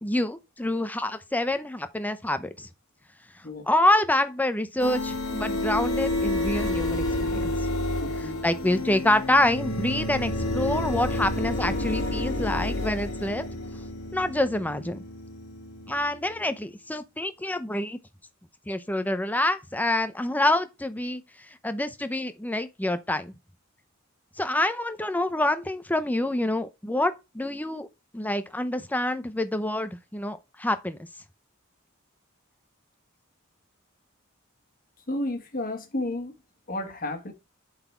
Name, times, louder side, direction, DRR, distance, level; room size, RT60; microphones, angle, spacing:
voice 1, 0.0-2.7 3.7-7.5 8.4-13.5 14.1-15.0 15.9-18.0 18.7-21.2 21.6-23.3 24.4-27.9 28.1-31.1, left 1 dB, 10° left, 0.6 m, -27 dB
sound 1, 4.8-16.4, left 1 dB, 80° left, 1.9 m, -30 dB
voice 2, 8.0-8.4 35.1-36.3 36.7-37.3, left 1 dB, 45° left, 1.5 m, -32 dB
7.9 x 4.0 x 4.5 m
head